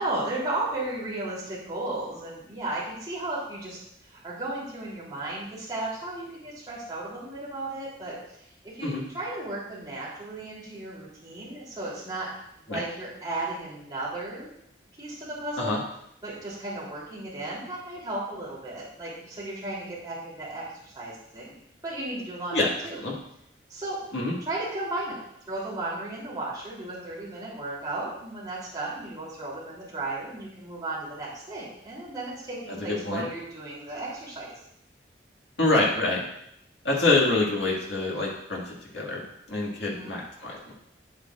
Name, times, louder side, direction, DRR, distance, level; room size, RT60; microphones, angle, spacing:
voice 1, 0.0-3.8 4.1-8.2 8.6-12.3 12.7-14.5 15.0-15.8 16.2-21.5 21.8-23.0 23.7-24.0 24.4-25.2 25.5-34.5 39.8-40.2, right 2 dB, 20° right, -7 dB, 3.2 m, -34 dB
voice 2, 32.7-33.2 35.6-36.2 36.8-40.7, left 2 dB, 70° left, -3 dB, 2.1 m, -26 dB
9.7 x 8.0 x 2.5 m, 0.76 s
head